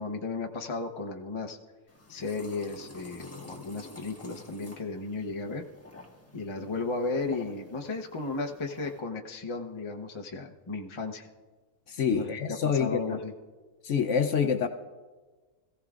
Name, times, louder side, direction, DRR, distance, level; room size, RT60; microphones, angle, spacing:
voice 1, 0.0-1.6 2.1-5.6 6.3-11.3 12.1-13.3, left 3 dB, 30° left, 2 dB, 0.5 m, -34 dB
sound 1, 1.9-9.0, left 2 dB, 10° left, 1.3 m, -50 dB
voice 2, 11.9-13.2 13.8-14.7, left 7 dB, 60° left, 7 dB, 0.8 m, -27 dB
25.5 x 15.5 x 2.4 m, 1.3 s
omnidirectional pair, 1.7 m